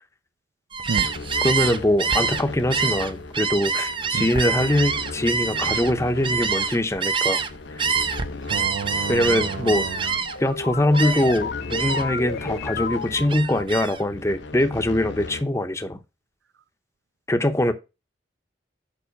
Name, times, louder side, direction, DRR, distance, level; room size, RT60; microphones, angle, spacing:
Gull seagull, 0.7-7.5 7.8-10.5 10.9-11.4 11.7-12.2 12.6-14.0, right 5 dB, 30° right, 0.7 m, -26 dB
sound 1, 0.9-15.4, left 3 dB, 90° left, 0.8 m, -38 dB
voice 1, 1.4-7.4 7.7-7.9 9.1-9.9 10.4-16.0 17.3-17.7, left 1 dB, 15° left, 0.8 m, -23 dB
voice 2, 8.5-10.0, right 5 dB, 85° right, 0.4 m, -30 dB
sound 2, 9.8-14.0, left 4 dB, 55° left, 0.8 m, -33 dB
7.1 x 5.6 x 5.1 m
head